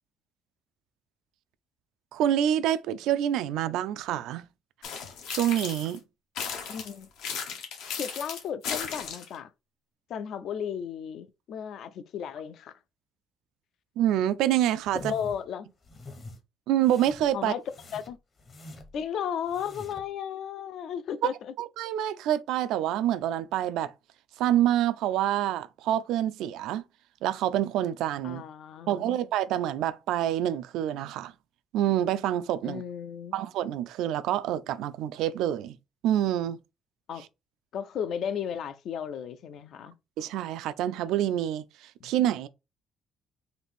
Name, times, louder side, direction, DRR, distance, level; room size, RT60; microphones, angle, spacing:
voice 1, 2.1-4.4 5.3-6.0 14.0-15.1 16.7-17.5 21.6-23.9 24.4-26.8 27.2-28.4 28.9-31.3 31.7-32.8 33.3-35.8 36.0-36.6 40.2-42.5, right 11 dB, 85° right, 0.3 m, -27 dB
sound 1, 4.8-6.0 6.4-9.4, left 6 dB, 80° left, 1.0 m, -35 dB
voice 2, 6.7-7.1 7.9-9.5 10.1-12.8 14.9-15.7 17.3-17.6 17.9-18.2 18.9-21.5 28.2-29.2 32.6-33.4 37.1-37.3 37.7-39.9 42.0-42.1, left 8 dB, 55° left, 0.4 m, -34 dB
sound 2, 14.8-15.4 15.8-16.4 16.8-17.3 17.7-19.0 19.4-20.1, left 2 dB, 30° left, 0.8 m, -46 dB
3.9 x 2.6 x 3.4 m
cardioid pair, 170°, 0 cm